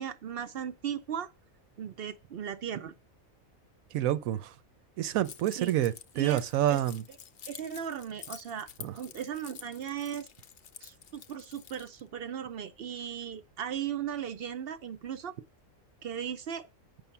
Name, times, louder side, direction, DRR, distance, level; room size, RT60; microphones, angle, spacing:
voice 1, 0.0-1.3 1.8-2.9 5.6-5.7 6.2-6.4 6.7-6.8 7.5-8.7 9.0-10.3 10.8-15.3 16.0-16.7, right 9 dB, 60° right, 0.6 m, -37 dB
voice 2, 3.9-4.5 5.0-7.0 8.8-8.9, right 12 dB, 85° right, 1.1 m, -28 dB
Keys jangling, 5.2-12.0, left 8 dB, 60° left, 0.7 m, -49 dB
7.9 x 5.5 x 5.8 m
omnidirectional pair, 1.4 m